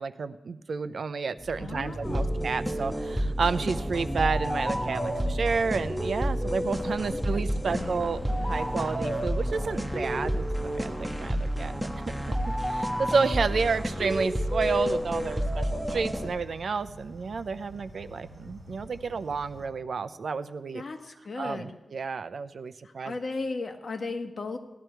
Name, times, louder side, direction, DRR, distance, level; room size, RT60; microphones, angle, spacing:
voice 1, 0.0-11.7 12.5-20.8 21.4-23.2, right 5 dB, 70° right, 12 dB, 0.6 m, -31 dB
sound 1, 1.4-10.6, left 1 dB, 20° left, 1.8 m, -41 dB
voice 2, 1.6-2.5 7.1-8.1 20.7-21.8 22.8-24.6, left 3 dB, 55° left, 3 dB, 1.5 m, -36 dB
sound 2, 2.0-16.3, equal, 5° right, 1.2 m, -30 dB
sound 3, 9.0-19.7, right 1 dB, 35° right, 4.0 m, -48 dB
17.5 x 12.0 x 4.6 m, 0.97 s
wide cardioid pair, 140°, 0 cm